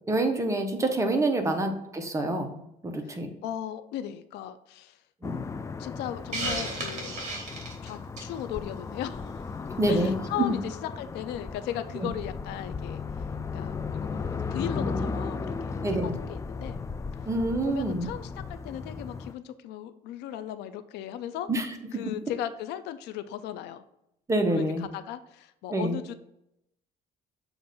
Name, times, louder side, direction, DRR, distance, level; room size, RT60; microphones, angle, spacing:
voice 1, 0.1-2.6 2.8-3.3 5.2-5.4 9.8-10.5 15.8-16.1 17.3-18.1 21.5-21.7 24.3-24.9 25.7-26.0, right 2 dB, 15° right, 5 dB, 0.9 m, -27 dB
voice 2, 3.4-5.0 5.8-7.2 7.8-9.4 9.9-13.0 13.5-15.8 16.2-16.8 17.6-21.5 21.9-23.8 24.5-26.1, left 11 dB, 85° left, 12 dB, 0.4 m, -37 dB
sound 1, 5.2-19.3, left 4 dB, 20° left, 0.3 m, -35 dB
Hiss, 6.3-8.4, right 2 dB, 45° right, 1.8 m, -33 dB
7.1 x 2.6 x 5.2 m, 0.82 s
cardioid pair, 110°, 17 cm